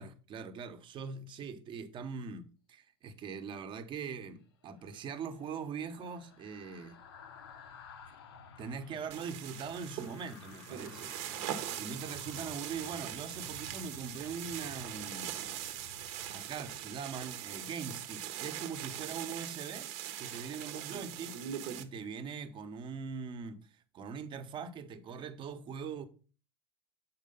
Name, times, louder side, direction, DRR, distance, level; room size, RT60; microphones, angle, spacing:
voice 1, 0.0-7.0 8.6-11.1 11.7-15.4 16.3-19.9 20.2-21.4 21.7-23.7 23.9-26.1, right 6 dB, 40° right, 1.3 m, -42 dB
sound 1, 4.7-18.0 18.4-18.6, left 4 dB, 75° left, 1.2 m, -54 dB
sound 2, 9.1-21.8, right 11 dB, 55° right, 1.3 m, -41 dB
7.4 x 4.9 x 5.6 m
hypercardioid pair, 85°, 13 cm